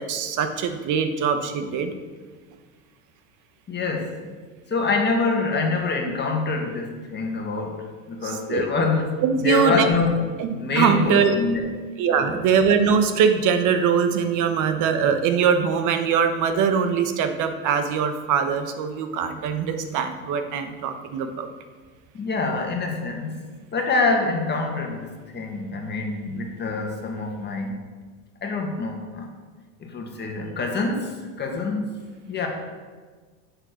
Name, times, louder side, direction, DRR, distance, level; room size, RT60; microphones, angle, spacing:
voice 1, 0.0-1.9 8.2-8.7 9.2-9.9 10.4-11.3 12.0-21.5, right 6 dB, 45° right, 8 dB, 1.2 m, -22 dB
voice 2, 3.7-4.3 4.7-7.7 8.1-9.1 9.4-10.1 10.5-11.6 12.1-12.4 22.1-23.4 23.7-27.8 28.4-29.3 29.8-32.0 32.3-32.5, left 3 dB, 25° left, 2 dB, 1.9 m, -25 dB
8.9 x 6.7 x 6.3 m, 1.5 s
supercardioid pair, 110°, 40 cm